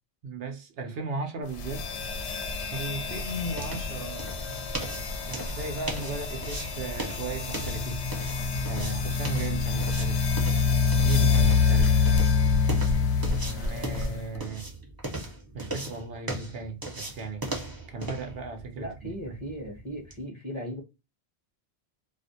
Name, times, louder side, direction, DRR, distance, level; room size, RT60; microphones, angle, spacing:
voice 1, 0.2-1.9 2.7-4.3 5.3-8.2 8.7-10.3 11.0-12.1 13.5-14.7 15.5-17.4 17.9-19.4, right 3 dB, 65° right, 0.8 m, -36 dB
sound 1, 1.5-14.4, left 5 dB, 80° left, 0.9 m, -26 dB
sound 2, 2.4-20.2, right 2 dB, 25° right, 0.6 m, -39 dB
voice 2, 18.8-20.8, equal, 30° left, 0.8 m, -37 dB
2.3 x 2.1 x 2.5 m
omnidirectional pair, 1.1 m